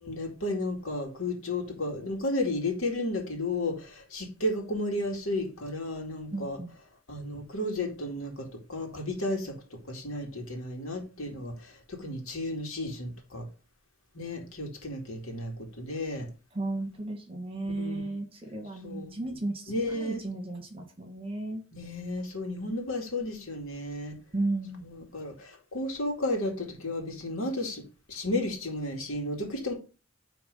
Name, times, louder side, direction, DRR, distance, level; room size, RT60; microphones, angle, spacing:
voice 1, 0.0-6.6 7.1-13.4 14.1-16.3 17.6-18.2 18.8-19.2 19.7-20.2 21.7-24.2 24.8-27.8 28.1-29.7, left 1 dB, 80° left, 2.2 m, -33 dB
voice 2, 6.3-6.7 16.5-21.7 24.3-24.9, right 2 dB, 25° right, 1.5 m, -34 dB
9.6 x 3.5 x 5.3 m
head